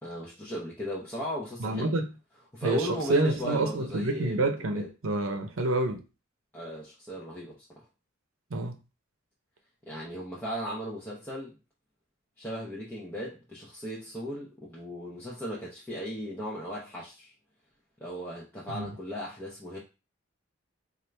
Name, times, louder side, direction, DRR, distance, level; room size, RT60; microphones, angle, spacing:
voice 1, 0.0-1.9 2.5-4.9 6.5-7.7 9.9-11.6 12.4-17.3 18.0-19.8, equal, 10° left, 0.7 m, -37 dB
voice 2, 1.6-2.0 2.6-6.0 8.5-8.8 18.7-18.9, right 2 dB, 80° right, 0.7 m, -28 dB
4.4 x 2.5 x 3.3 m
head